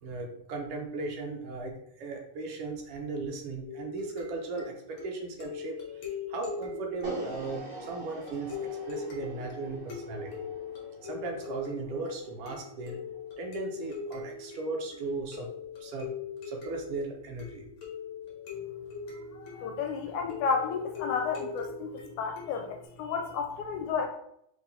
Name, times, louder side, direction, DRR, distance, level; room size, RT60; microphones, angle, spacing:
voice 1, 0.0-5.8 6.3-10.5 11.0-13.0 13.4-15.5 15.8-16.1 16.5-17.6, right 3 dB, 90° right, 1 dB, 1.2 m, -37 dB
sound 1, 3.6-22.8, left 5 dB, 55° left, 1.5 m, -42 dB
sound 2, 7.0-13.2, right 2 dB, 50° right, 1.4 m, -45 dB
voice 2, 19.3-24.1, left 5 dB, 85° left, 3 dB, 2.0 m, -32 dB
4.6 x 4.3 x 2.7 m, 0.72 s
omnidirectional pair, 3.5 m